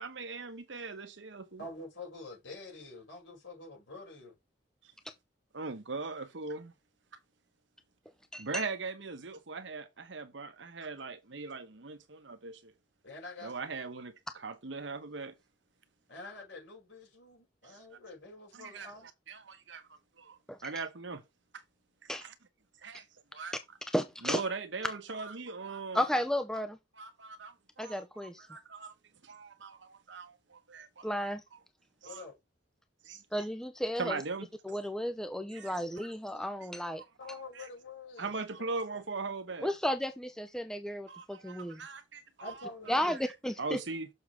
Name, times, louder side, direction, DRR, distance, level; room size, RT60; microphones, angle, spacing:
voice 1, 0.0-1.6 5.5-6.7 8.4-12.7 13.4-15.4 17.6-18.0 18.5-19.8 20.2-21.2 21.5-21.6 22.0-22.3 22.8-23.0 23.3-23.5 24.2-26.1 27.0-28.0 28.5-28.9 29.2-31.1 32.0-32.2 33.0-33.2 34.0-34.5 35.5-35.8 37.2-37.7 38.2-39.7 41.1-42.5 43.6-44.1, right 4 dB, 75° right, 1.1 m, -40 dB
voice 2, 1.6-4.4 13.0-13.7 16.1-19.1 32.0-32.4 37.2-38.3 38.9-39.0 42.4-43.0, left 2 dB, 75° left, 5.5 m, -47 dB
voice 3, 8.3-8.7 20.5-20.6 22.1-22.2 23.9-24.4 25.9-26.8 27.8-28.5 31.0-31.4 33.3-34.2 34.6-37.0 39.6-41.8 42.9-43.8, equal, 5° left, 0.5 m, -33 dB
6.7 x 6.4 x 3.3 m
head